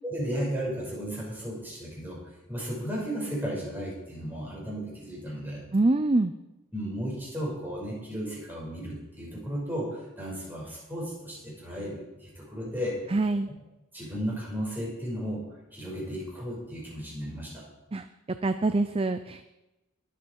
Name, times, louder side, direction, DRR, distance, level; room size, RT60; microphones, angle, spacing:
voice 1, 0.0-2.2 2.5-5.6 6.7-13.0 13.9-15.4 15.7-17.6, equal, 10° right, -4 dB, 5.6 m, -34 dB
voice 2, 5.7-6.3 13.1-13.5 17.9-18.1 18.4-19.5, right 2 dB, 25° right, 10 dB, 0.4 m, -25 dB
21.0 x 8.4 x 4.7 m, 0.99 s
head